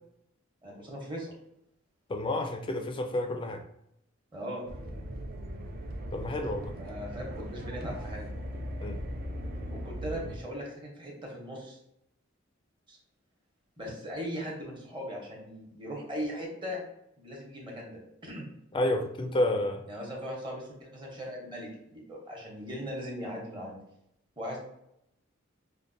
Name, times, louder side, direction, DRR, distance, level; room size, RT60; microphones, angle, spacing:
voice 1, 0.6-1.3 4.3-4.7 6.8-8.3 9.7-11.8 12.9-13.0 13.8-16.8 17.2-18.5 19.9-23.8 24.4-24.6, equal, 25° right, -2 dB, 0.9 m, -39 dB
voice 2, 2.1-3.6 6.1-6.7 8.8-9.0 18.7-19.8, left 1 dB, 25° left, 5 dB, 0.4 m, -30 dB
sound 1, 4.7-10.4, equal, 45° right, 0.4 m, -38 dB
5.1 x 2.1 x 2.6 m, 0.78 s
head